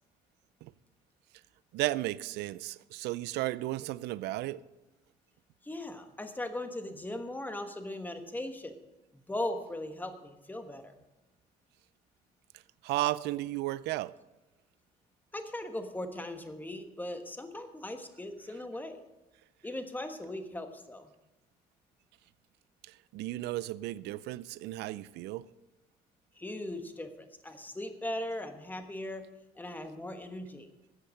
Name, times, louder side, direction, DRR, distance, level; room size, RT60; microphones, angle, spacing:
voice 1, 1.7-4.6 12.8-14.1 23.1-25.5, right 17 dB, 80° right, 0.5 m, -34 dB
voice 2, 5.6-8.7 9.1-10.9 15.3-19.0 19.6-21.1 26.4-29.2 29.6-30.7, left 1 dB, 10° left, 1.3 m, -39 dB
13.5 x 8.0 x 6.3 m
cardioid pair, 110°, 17 cm